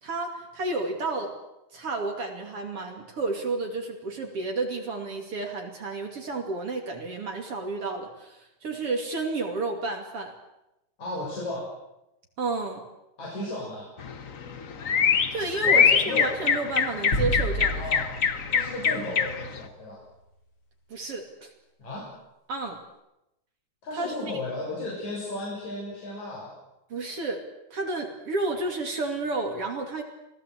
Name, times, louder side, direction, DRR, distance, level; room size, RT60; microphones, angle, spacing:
voice 1, 0.0-1.4 1.7-10.3 12.4-12.9 15.3-17.8 20.9-21.5 22.5-22.8 23.9-24.4 26.9-27.4 27.7-30.0, right 3 dB, 50° right, 3 dB, 3.5 m, -31 dB
voice 2, 11.0-11.7 13.2-13.9 15.6-16.3 17.6-18.1 18.5-20.0 21.8-22.1 23.8-26.5, left 2 dB, 75° left, -4 dB, 8.3 m, -34 dB
sound 1, 14.0-19.6, left 6 dB, 60° left, 0.8 m, -24 dB
sound 2, 17.1-19.7, equal, 35° left, 5.4 m, -32 dB
27.5 x 18.0 x 8.2 m, 0.89 s
omnidirectional pair, 3.3 m